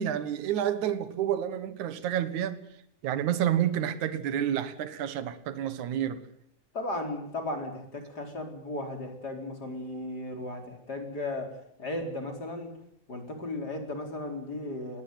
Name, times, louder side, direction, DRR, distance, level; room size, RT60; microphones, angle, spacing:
voice 1, 0.0-2.6 3.0-6.2, right 10 dB, 70° right, 2.8 m, -29 dB
voice 2, 6.7-11.5 11.8-12.7 13.1-15.0, left 2 dB, 30° left, 4.6 m, -35 dB
21.0 x 18.5 x 9.4 m
omnidirectional pair, 3.6 m